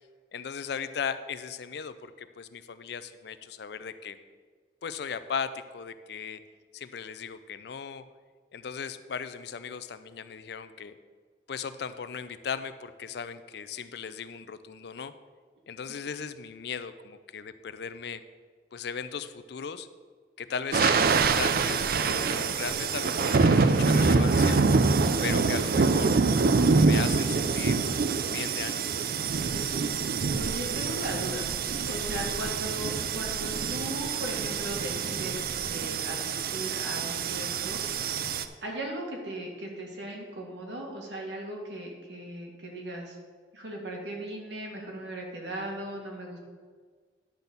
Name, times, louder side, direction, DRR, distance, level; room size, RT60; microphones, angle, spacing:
voice 1, 0.3-4.2 4.8-6.4 6.7-8.0 8.5-11.0 11.5-15.1 15.7-18.2 18.7-19.9 20.4-24.6 25.2-26.1 26.7-27.9 28.2-29.1, left 6 dB, 65° left, 12 dB, 0.4 m, -37 dB
sound 1, 20.7-38.4, right 4 dB, 55° right, 0.5 m, -25 dB
voice 2, 30.4-31.5 31.9-37.8 38.6-43.2 43.5-46.4, right 1 dB, 75° right, 0 dB, 1.9 m, -37 dB
10.5 x 4.1 x 6.8 m, 1.5 s
head